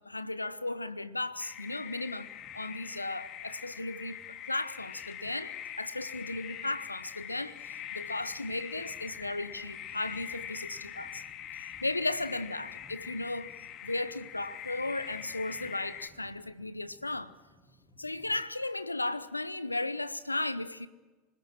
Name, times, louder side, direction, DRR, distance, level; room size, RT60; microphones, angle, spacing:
voice 1, 0.0-4.2 4.4-11.2 11.5-13.5 13.8-17.4 18.0-20.9, left 2 dB, 90° left, 0.9 m, -35 dB
sound 1, 0.8-18.5, left 1 dB, 15° left, 3.2 m, -62 dB
sound 2, 1.4-16.1, left 10 dB, 40° left, 2.0 m, -43 dB
25.5 x 20.5 x 7.6 m
figure-of-eight pair, 80°, 0 cm